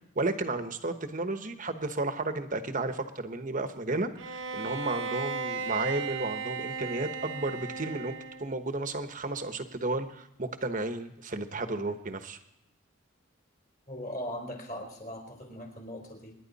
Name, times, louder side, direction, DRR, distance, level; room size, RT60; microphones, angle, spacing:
voice 1, 0.2-12.4, right 2 dB, 40° right, 8 dB, 1.1 m, -33 dB
Bowed string instrument, 4.2-8.6, right 4 dB, 70° right, 1.1 m, -35 dB
voice 2, 13.9-16.3, equal, 40° left, 1 dB, 4.1 m, -39 dB
27.0 x 11.0 x 4.2 m, 0.86 s
head